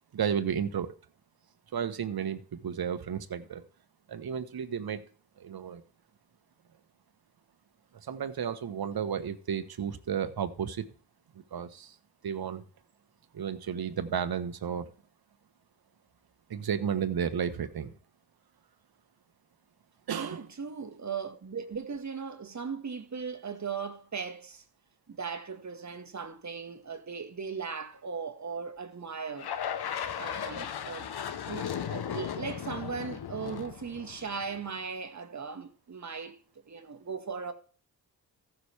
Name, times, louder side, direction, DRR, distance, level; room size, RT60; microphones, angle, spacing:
voice 1, 0.1-0.9 1.7-3.6 4.1-5.0 5.4-5.8 8.0-10.9 11.5-11.9 12.2-12.6 13.3-14.9 16.5-17.9 20.1-20.4, right 8 dB, 60° right, 1.3 m, -32 dB
voice 2, 20.2-24.6 25.1-29.5 30.2-31.1 31.5-36.4 36.7-37.5, right 5 dB, 40° right, 1.7 m, -38 dB
sound 1, 29.4-34.7, left 8 dB, 65° left, 1.1 m, -36 dB
14.5 x 6.0 x 3.4 m
cardioid pair, 55°, 42 cm